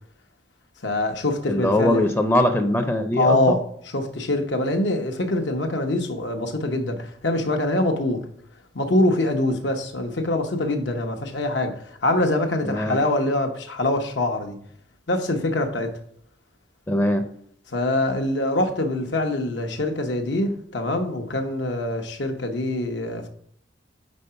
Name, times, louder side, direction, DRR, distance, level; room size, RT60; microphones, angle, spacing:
voice 1, 0.8-2.0 3.1-8.2 8.7-14.6 15.1-15.9 17.7-23.3, left 1 dB, 85° left, 0.9 m, -24 dB
voice 2, 1.5-3.6 12.6-13.0 16.9-17.2, left 1 dB, 15° left, 0.5 m, -21 dB
5.3 x 3.8 x 5.6 m
head